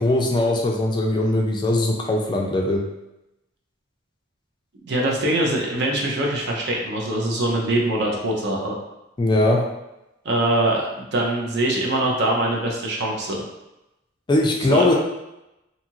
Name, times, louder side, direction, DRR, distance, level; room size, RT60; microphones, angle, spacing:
voice 1, 0.0-2.8 9.2-9.6 14.3-14.9, left 1 dB, 25° left, 0 dB, 0.3 m, -20 dB
voice 2, 4.9-8.8 10.2-13.4 14.7-14.8, right 1 dB, 60° right, -1 dB, 0.6 m, -23 dB
2.7 x 2.4 x 2.9 m, 0.92 s
head